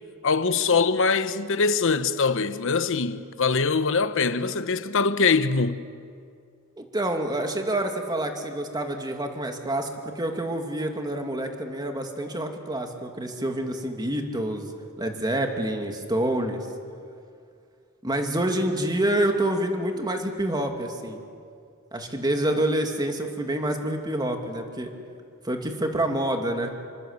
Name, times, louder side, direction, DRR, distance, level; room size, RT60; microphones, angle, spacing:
voice 1, 0.2-5.8 22.5-22.6, left 4 dB, 65° left, 1.0 m, -23 dB
voice 2, 6.8-14.7 15.0-16.7 18.0-21.2 21.9-24.9 25.4-26.7, right 1 dB, 20° right, 2.6 m, -27 dB
27.5 x 24.5 x 8.3 m
head